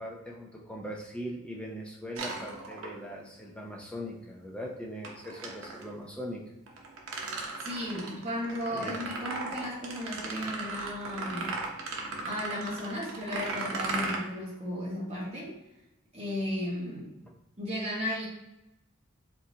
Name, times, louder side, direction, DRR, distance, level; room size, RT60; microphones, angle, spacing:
voice 1, 0.0-6.4 8.7-9.0, equal, 5° left, -2 dB, 0.6 m, -40 dB
sound 1, 2.2-3.2 5.0-5.9 6.7-14.2, right 3 dB, 80° right, 0.8 m, -37 dB
voice 2, 7.6-11.5 12.2-15.5 16.1-17.1 17.6-18.3, left 1 dB, 30° right, -6 dB, 1.5 m, -35 dB
5.0 x 3.1 x 2.8 m, 0.93 s
head